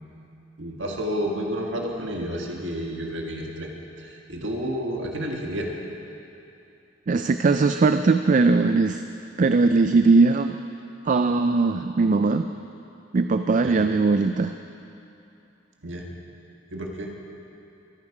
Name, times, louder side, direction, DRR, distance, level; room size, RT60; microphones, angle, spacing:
voice 1, 0.6-3.7 4.0-5.7 13.6-13.8 15.8-16.1 16.7-17.1, equal, 80° right, 0 dB, 1.6 m, -30 dB
voice 2, 7.1-9.0 9.4-10.6 11.0-12.5 13.1-14.5, right 3 dB, 45° right, 8 dB, 0.4 m, -20 dB
23.5 x 9.8 x 4.9 m, 2.8 s
head